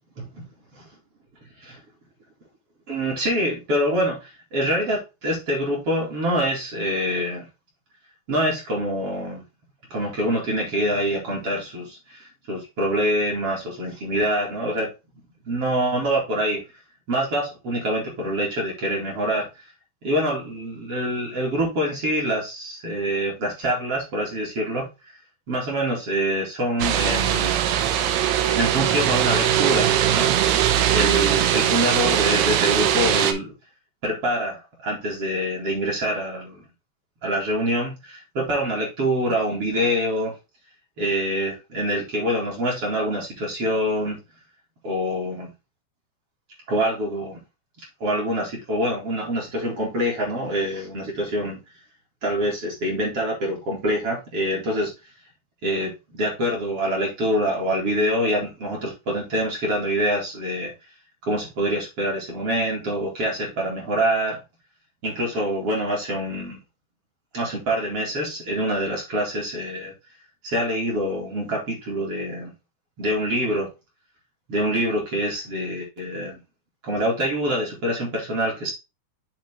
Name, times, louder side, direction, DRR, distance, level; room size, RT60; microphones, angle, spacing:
voice 1, 0.2-0.5 1.6-1.8 2.9-7.5 8.3-9.4 9.9-14.9 15.4-16.6 17.1-19.5 20.0-25.1 25.5-27.5 28.5-30.3 30.9-33.5 34.0-36.6 37.2-40.3 41.0-44.2 44.8-45.5 46.7-47.4 48.0-51.6 52.2-54.9 55.6-60.7 61.2-64.4 65.0-66.6 67.3-69.9 70.4-72.5 73.0-73.7 74.5-76.4 76.8-78.7, equal, 40° right, -2 dB, 2.7 m, -25 dB
sound 1, 26.8-33.3, right 10 dB, 85° right, 2.8 m, -21 dB
8.2 x 3.9 x 3.6 m, 0.26 s
omnidirectional pair, 4.6 m